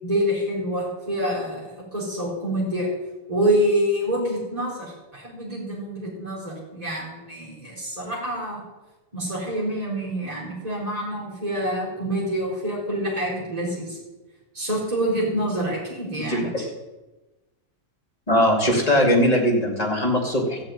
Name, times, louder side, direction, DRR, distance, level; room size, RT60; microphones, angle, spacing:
voice 1, 0.0-2.9 3.3-8.6 9.1-14.0 14.5-16.7, equal, 25° right, -5 dB, 4.1 m, -26 dB
voice 2, 16.3-16.6 18.3-20.6, equal, 25° left, -1 dB, 2.6 m, -20 dB
15.0 x 5.3 x 8.9 m, 1.1 s
omnidirectional pair, 1.6 m